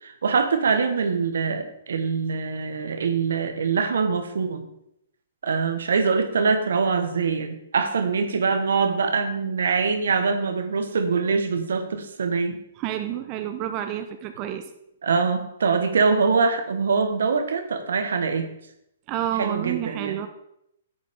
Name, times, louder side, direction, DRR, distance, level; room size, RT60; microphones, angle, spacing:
voice 1, 0.0-4.7 5.4-12.6 15.0-18.5 19.4-20.2, right 5 dB, 75° right, 7 dB, 1.3 m, -23 dB
voice 2, 12.8-14.6 19.1-20.3, right 11 dB, 35° right, 7 dB, 0.7 m, -29 dB
11.0 x 8.1 x 3.7 m, 0.78 s
hypercardioid pair, 130°, 0 cm